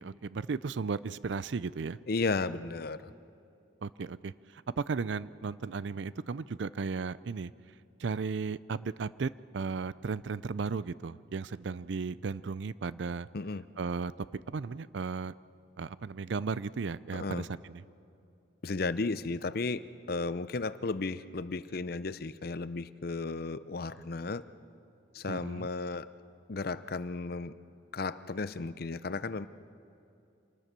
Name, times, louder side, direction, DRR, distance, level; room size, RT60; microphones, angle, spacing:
voice 1, 0.0-2.0 3.8-7.5 8.0-13.3 13.8-14.1 14.5-15.3 15.8-17.8 25.3-25.7, right 5 dB, 65° right, 18 dB, 0.4 m, -35 dB
voice 2, 2.1-3.1 13.3-13.6 17.1-17.5 18.6-24.4 25.1-26.1 26.5-27.5 27.9-29.5, left 3 dB, 50° left, 15 dB, 0.6 m, -34 dB
26.5 x 20.0 x 6.8 m, 2.6 s
head